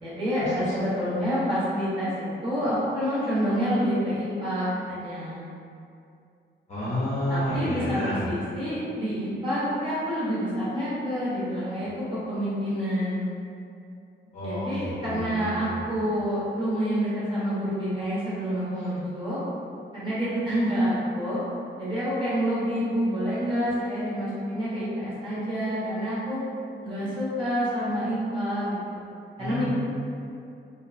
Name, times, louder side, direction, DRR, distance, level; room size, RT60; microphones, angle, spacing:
voice 1, 0.0-5.5 7.3-13.2 14.4-19.4 19.9-21.4 21.8-26.4 26.8-29.0 29.4-29.6, equal, 25° right, -11 dB, 0.9 m, -28 dB
voice 2, 6.7-8.2 14.3-15.8 29.4-29.6, left 1 dB, 35° left, -10 dB, 0.7 m, -30 dB
3.1 x 2.1 x 2.5 m, 2.5 s
wide cardioid pair, 170°, 20 cm